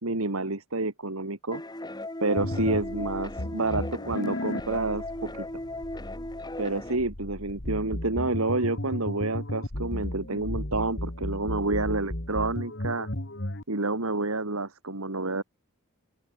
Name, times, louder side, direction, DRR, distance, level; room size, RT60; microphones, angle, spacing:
voice 1, 0.0-1.6 2.2-5.5 6.6-13.1 13.7-15.4, right 2 dB, 70° right, 2.2 m, -29 dB
sound 1, 1.5-7.0, left 1 dB, 20° left, 3.9 m, -37 dB
sound 2, 2.4-13.6, left 1 dB, 55° left, 3.1 m, -35 dB
open air
head